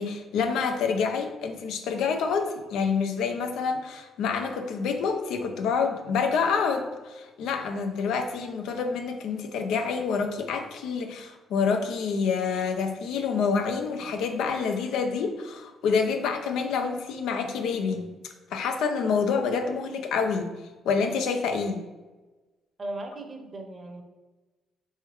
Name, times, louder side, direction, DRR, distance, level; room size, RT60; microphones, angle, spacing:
voice 1, 0.0-18.1 18.5-20.5 20.8-21.8, left 5 dB, 85° left, 5 dB, 0.5 m, -27 dB
voice 2, 22.8-24.0, right 2 dB, 30° right, 5 dB, 0.8 m, -37 dB
3.4 x 3.4 x 4.5 m, 1.2 s
cardioid pair, 90°, 0 cm